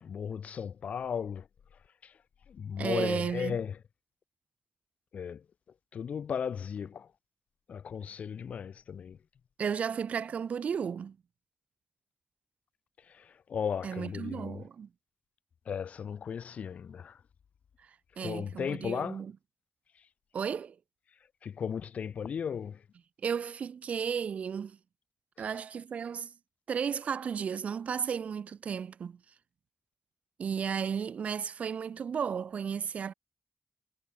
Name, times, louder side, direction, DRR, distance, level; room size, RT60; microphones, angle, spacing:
voice 1, 0.0-1.5 2.0-2.1 2.5-3.7 5.1-5.4 5.9-7.1 7.7-9.2 13.1-14.6 15.7-17.2 18.2-19.2 21.4-22.8 25.4-25.5, left 7 dB, 90° left, 0.6 m, -36 dB
voice 2, 2.8-3.6 9.6-11.2 13.8-14.9 18.2-19.3 20.3-20.8 23.2-24.8 25.4-26.3 26.7-29.2 30.4-33.1, right 7 dB, 80° right, 0.4 m, -34 dB
wide cardioid pair, 80°, 2 cm